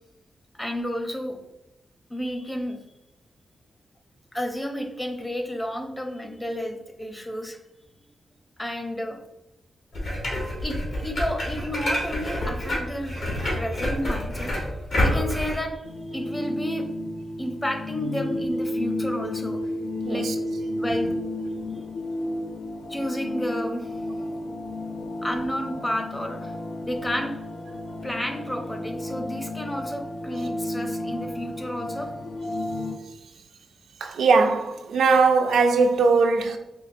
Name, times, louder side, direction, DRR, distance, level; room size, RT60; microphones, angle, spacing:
voice 1, 0.6-1.4 2.1-2.8 4.3-7.6 8.6-9.2 10.6-13.1 13.5-14.5 15.0-15.8 16.1-16.9 17.4-19.6 20.1-20.3 20.8-21.1 22.9-23.9 25.2-26.5 26.8-27.3 28.0-32.1, equal, 15° left, 0.5 m, -31 dB
sound 1, 9.9-15.5, left 1 dB, 70° left, 1.3 m, -27 dB
sound 2, 15.8-33.0, left 1 dB, 85° left, 0.4 m, -32 dB
voice 2, 20.0-20.4 34.0-36.6, right 4 dB, 85° right, 0.4 m, -20 dB
4.5 x 2.4 x 2.6 m
cardioid pair, 90°, 0 cm